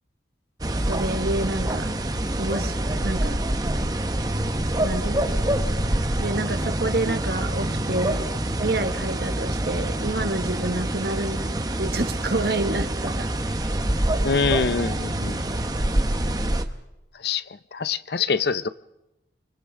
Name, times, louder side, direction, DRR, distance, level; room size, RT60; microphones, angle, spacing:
sound 1, 0.6-16.6, right 1 dB, 20° right, 0.9 m, -26 dB
voice 1, 0.8-1.9 2.4-3.4 4.8-5.5 6.2-11.5 11.8-13.3, right 2 dB, 60° right, 7 dB, 1.4 m, -28 dB
voice 2, 14.2-15.4 17.2-17.4 17.7-18.7, left 5 dB, 60° left, 14 dB, 0.6 m, -24 dB
29.0 x 24.5 x 3.7 m, 0.93 s
head